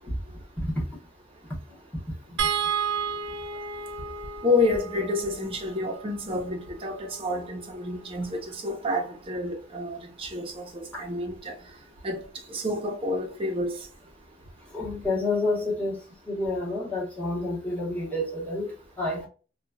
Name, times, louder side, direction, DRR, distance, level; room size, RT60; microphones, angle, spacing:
sound 1, 2.4-8.7 10.2-10.4 10.8-10.9, right 6 dB, 85° right, 0.5 m, -34 dB
voice 1, 4.4-11.5 12.0-13.8, left 2 dB, 30° right, 0.7 m, -29 dB
voice 2, 14.7-16.0 16.3-19.3, left 2 dB, 10° left, 1.2 m, -29 dB
2.9 x 2.4 x 2.2 m
head